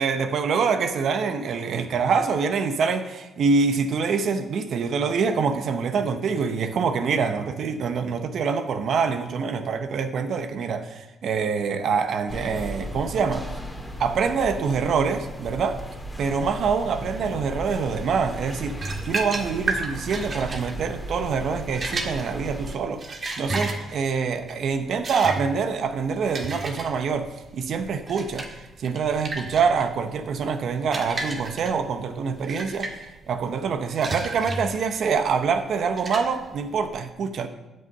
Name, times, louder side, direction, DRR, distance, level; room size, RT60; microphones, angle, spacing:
voice 1, 0.0-13.5 14.0-15.8 16.2-27.3 27.5-28.5 28.8-37.5, right 5 dB, 65° right, 8 dB, 0.8 m, -25 dB
sound 1, 12.3-22.8, equal, 10° left, 1.8 m, -36 dB
sound 2, 18.7-36.9, right 2 dB, 40° right, 1.8 m, -33 dB
9.2 x 5.5 x 7.9 m, 1.0 s
cardioid pair, 80°, 0 cm